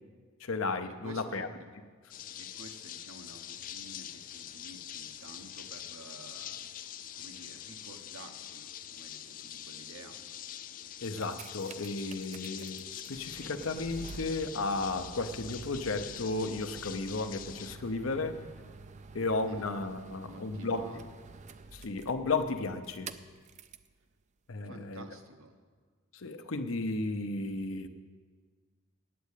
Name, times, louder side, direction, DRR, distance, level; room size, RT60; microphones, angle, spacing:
voice 1, 0.4-1.5 11.0-18.5 19.1-20.9 21.7-23.1 24.5-25.1 26.1-27.9, left 3 dB, 75° left, 8 dB, 0.7 m, -34 dB
voice 2, 1.0-1.5 2.4-6.6 7.2-8.6 8.9-10.2 19.5-21.0 24.6-25.6, right 2 dB, 80° right, 5 dB, 1.2 m, -51 dB
sound 1, 2.1-17.8, left 11 dB, 40° left, 0.4 m, -45 dB
sound 2, 10.9-23.9 24.7-24.8, right 4 dB, 35° right, 0.4 m, -49 dB
9.4 x 8.3 x 8.2 m, 1.5 s
head